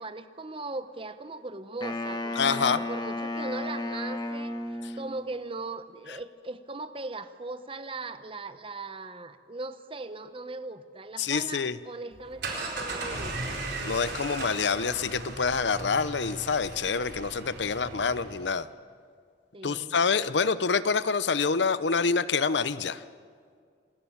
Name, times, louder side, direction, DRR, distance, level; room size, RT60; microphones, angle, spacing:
voice 1, 0.0-4.6 5.0-13.6 19.5-19.9, right 3 dB, 30° right, 11 dB, 1.0 m, -39 dB
Wind instrument woodwind instrument, 1.8-5.3, left 2 dB, 25° left, 1.8 m, -33 dB
voice 2, 2.4-2.8 4.8-4.9 11.2-11.8 13.9-18.7 19.6-23.0, left 5 dB, 75° left, 15 dB, 0.8 m, -27 dB
sound 1, 12.1-18.5, right 2 dB, 65° right, 4.3 m, -37 dB
27.5 x 20.0 x 7.3 m, 2.1 s
head